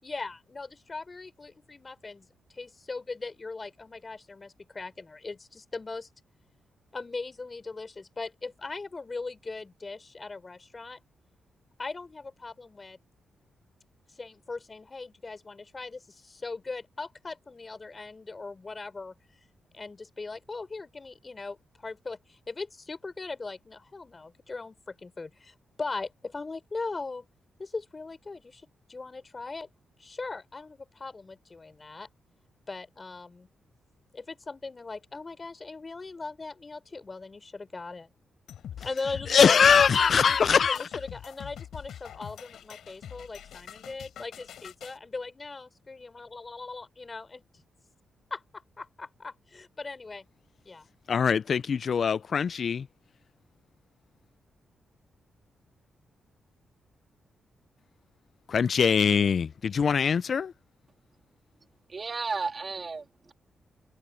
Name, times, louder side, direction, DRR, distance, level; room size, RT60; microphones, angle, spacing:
voice 1, 0.0-2.3 2.5-6.1 6.9-11.0 11.8-13.0 14.2-19.1 19.7-27.2 27.6-29.7 30.0-32.1 32.7-33.5 34.1-38.1 38.8-39.6 40.7-47.4 48.3-48.4 48.8-50.2 50.7-50.9, left 3 dB, 30° left, 5.4 m, -39 dB
sound 1, 38.5-45.0, left 10 dB, 80° left, 6.3 m, -43 dB
voice 2, 39.3-40.8 51.1-52.9 58.5-60.5, left 6 dB, 55° left, 0.5 m, -22 dB
voice 3, 61.9-63.3, right 4 dB, 40° right, 3.4 m, -33 dB
cardioid pair, 85°, 0 cm